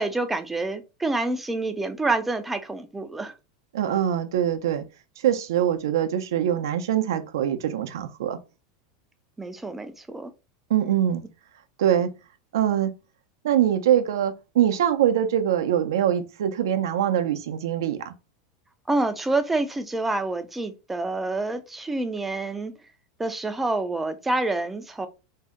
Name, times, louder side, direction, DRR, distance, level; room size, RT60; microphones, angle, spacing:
voice 1, 0.0-3.3 9.4-10.3 18.9-22.7 23.2-25.1, right 2 dB, 10° right, 0.3 m, -27 dB
voice 2, 3.7-4.8 5.2-8.4 10.7-11.2 11.8-12.1 12.5-12.9 13.4-18.1, right 10 dB, 85° right, 0.4 m, -23 dB
2.6 x 2.1 x 3.5 m
supercardioid pair, 145°, 2 cm